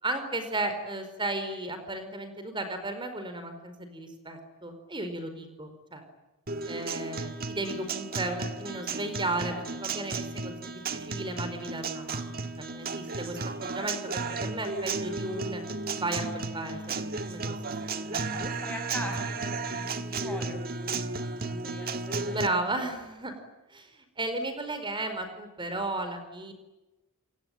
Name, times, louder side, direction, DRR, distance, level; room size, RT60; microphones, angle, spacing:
voice 1, 0.0-6.0 6.6-15.6 16.0-16.8 17.3-17.6 18.0-18.5 22.2-23.4 23.7-26.5, right 2 dB, 20° right, 8 dB, 4.7 m, -34 dB
Guitar, 6.5-22.5, right 3 dB, 45° right, 1.6 m, -34 dB
voice 2, 18.3-22.9, left 1 dB, 5° left, 3 dB, 5.7 m, -42 dB
28.0 x 23.0 x 9.3 m, 1.1 s
head